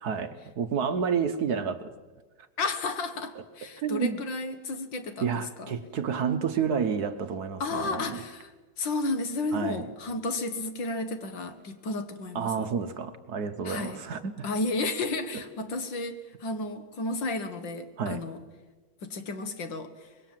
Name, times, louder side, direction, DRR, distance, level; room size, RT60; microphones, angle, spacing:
voice 1, 0.0-1.9 3.8-4.2 5.2-8.2 9.5-9.8 12.3-14.3 18.0-18.2, right 6 dB, 60° right, 10 dB, 1.3 m, -30 dB
voice 2, 2.6-5.8 7.6-12.7 13.6-14.0 14.4-18.4 19.0-20.1, left 2 dB, 70° left, 9 dB, 2.2 m, -32 dB
25.0 x 21.0 x 7.6 m, 1.3 s
omnidirectional pair, 2.2 m